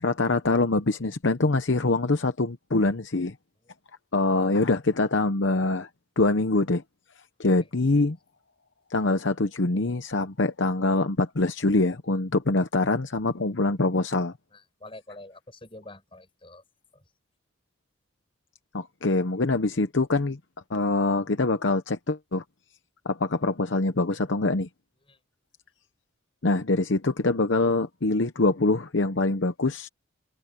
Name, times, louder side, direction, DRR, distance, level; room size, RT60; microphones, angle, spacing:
voice 1, 0.0-3.3 4.1-5.9 6.2-6.8 7.4-8.2 8.9-14.3 18.7-20.4 20.7-22.4 23.1-24.7 26.4-29.9, left 2 dB, 60° left, 0.9 m, -24 dB
voice 2, 14.5-16.6 25.1-25.2, left 2 dB, 25° left, 7.8 m, -46 dB
head